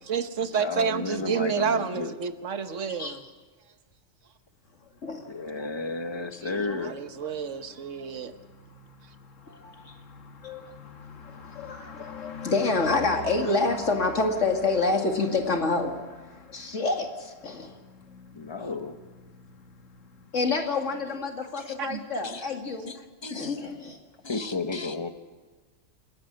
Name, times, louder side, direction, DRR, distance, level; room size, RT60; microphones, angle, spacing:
voice 1, 0.0-3.2 6.4-8.3 12.0-12.1 21.8-22.0, right 6 dB, 75° right, 10 dB, 1.4 m, -30 dB
voice 2, 0.6-2.1 5.3-7.0 18.3-19.0 21.5-21.8 22.2-22.4 22.9-23.0 23.2-23.7 24.2-25.1, left 3 dB, 25° left, 8 dB, 1.1 m, -33 dB
sound 1, 5.0-21.0, left 5 dB, 90° left, 1.7 m, -46 dB
voice 3, 5.0-5.7 9.5-9.9 10.4-10.7 11.4-15.9 16.5-17.8 18.6-18.7 20.3-22.9 23.3-24.0, left 3 dB, 75° left, 3 dB, 2.6 m, -28 dB
28.0 x 10.5 x 8.9 m, 1.4 s
omnidirectional pair, 1.3 m